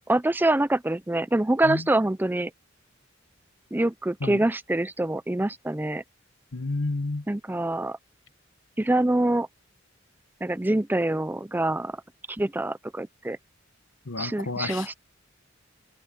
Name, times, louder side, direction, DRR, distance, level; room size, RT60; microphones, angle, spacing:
voice 1, 0.1-2.5 3.7-6.0 7.3-8.0 8.8-9.5 10.4-12.0 12.3-13.4 14.2-14.9, right 1 dB, 10° right, 0.5 m, -25 dB
voice 2, 6.5-7.2 14.1-14.9, left 3 dB, 80° left, 1.2 m, -30 dB
head